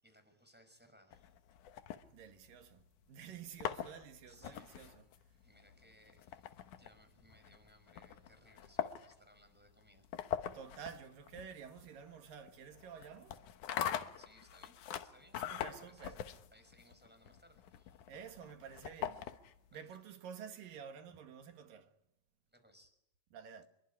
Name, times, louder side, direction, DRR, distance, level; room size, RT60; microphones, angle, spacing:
voice 1, 0.0-1.5 4.3-4.9 5.3-10.3 13.9-15.4 15.9-18.1 19.7-20.0 22.5-23.0, equal, 5° right, 5.3 m, -65 dB
sound 1, 1.1-2.7 3.4-19.7, left 10 dB, 70° left, 2.5 m, -43 dB
voice 2, 2.1-5.1 10.5-13.5 15.4-16.2 18.1-19.3 19.7-21.9 23.3-23.7, right 7 dB, 85° right, 3.6 m, -51 dB
26.0 x 23.0 x 9.9 m
omnidirectional pair, 3.8 m